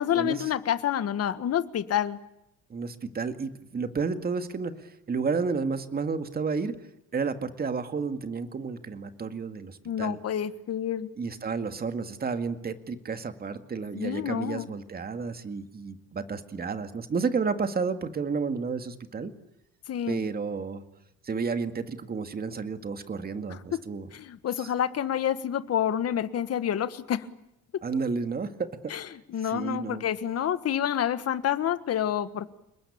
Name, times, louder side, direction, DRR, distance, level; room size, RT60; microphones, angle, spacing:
voice 1, 0.0-2.2 9.8-11.1 13.9-14.7 19.9-20.3 23.5-23.8 24.1-27.3 28.9-32.5, left 10 dB, 50° left, 12 dB, 1.6 m, -28 dB
voice 2, 2.7-6.8 7.1-10.2 11.2-19.3 20.1-20.8 21.2-24.1 24.6-24.7 27.8-28.9 29.5-30.0, right 5 dB, 30° right, 8 dB, 2.1 m, -31 dB
29.5 x 20.5 x 8.7 m, 0.85 s
cardioid pair, 150°, 33 cm